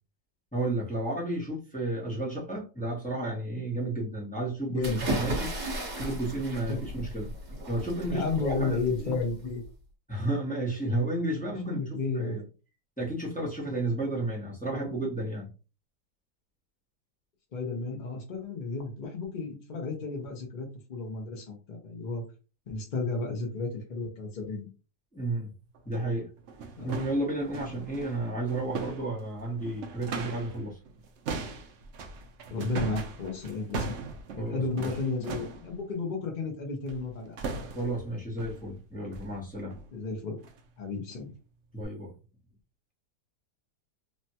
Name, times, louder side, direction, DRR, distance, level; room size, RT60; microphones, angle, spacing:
voice 1, 0.5-5.7 5.9-7.3 7.7-9.2 10.1-11.8 12.1-12.4 13.0-15.5 25.1-25.5 25.8-26.3 26.8-30.8 34.4-34.9 37.7-39.8 41.7-42.1, right 2 dB, 10° left, 0.5 m, -32 dB
voice 2, 4.7-5.0 6.7-6.8 8.1-9.6 11.6-12.4 17.5-22.2 22.7-24.7 26.8-27.0 32.5-33.9 34.3-37.5 39.9-40.4 40.8-41.3, left 3 dB, 65° left, 0.4 m, -33 dB
sound 1, 4.8-9.6, right 1 dB, 45° right, 1.1 m, -35 dB
sound 2, 25.7-25.8 26.4-30.6 30.8-35.7 36.9-37.1 37.4-38.0 38.4-38.7 39.1-39.3 39.7-39.9 40.4-40.6 41.1-41.2 41.8-41.9, right 4 dB, 80° right, 0.6 m, -39 dB
3.2 x 2.1 x 2.8 m
omnidirectional pair, 1.9 m